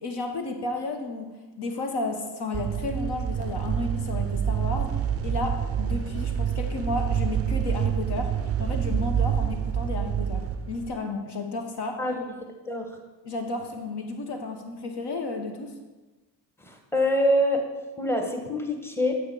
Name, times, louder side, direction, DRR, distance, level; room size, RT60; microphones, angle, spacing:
voice 1, 0.0-1.3 1.6-5.0 5.2-12.0 13.2-15.7, left 2 dB, 55° left, 4 dB, 1.0 m, -32 dB
sound 1, 2.5-10.9, right 8 dB, 30° right, 0.4 m, -27 dB
voice 2, 12.7-13.0 16.6-17.6 18.0-19.2, left 1 dB, 5° left, 3 dB, 1.1 m, -25 dB
8.4 x 3.7 x 4.6 m, 1.2 s
hypercardioid pair, 50°, 49 cm